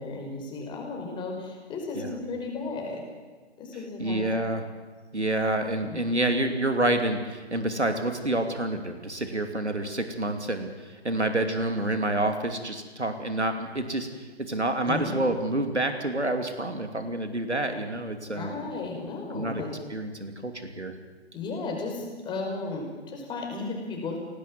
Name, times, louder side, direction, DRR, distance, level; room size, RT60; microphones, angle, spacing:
voice 1, 0.0-3.0 3.6-4.4 5.8-6.0 14.9-15.1 18.3-19.7 21.3-24.2, left 3 dB, 15° left, 1 dB, 5.2 m, -34 dB
voice 2, 4.0-4.6 5.1-18.6 19.3-19.6 19.9-20.9, right 1 dB, 90° right, 6 dB, 2.9 m, -28 dB
28.5 x 18.5 x 7.6 m, 1.3 s
figure-of-eight pair, 130°, 33 cm